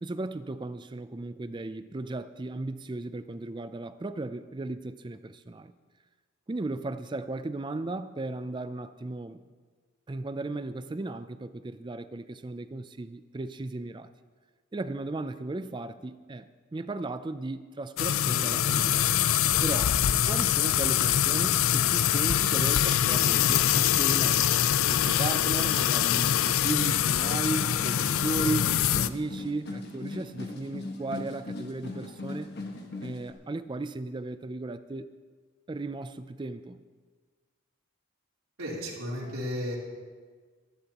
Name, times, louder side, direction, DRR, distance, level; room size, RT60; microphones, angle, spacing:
voice 1, 0.0-5.7 6.5-9.4 10.1-14.1 14.7-19.1 19.6-20.0 20.3-24.5 24.9-32.5 33.0-35.1 35.7-36.8, right 2 dB, 20° right, 0.4 m, -36 dB
sound 1, 18.0-29.1, left 10 dB, 70° left, 0.4 m, -24 dB
sound 2, 27.2-33.3, left 2 dB, 50° left, 1.5 m, -39 dB
voice 2, 38.6-39.8, equal, 75° right, 3.5 m, -33 dB
24.5 x 11.5 x 2.9 m
head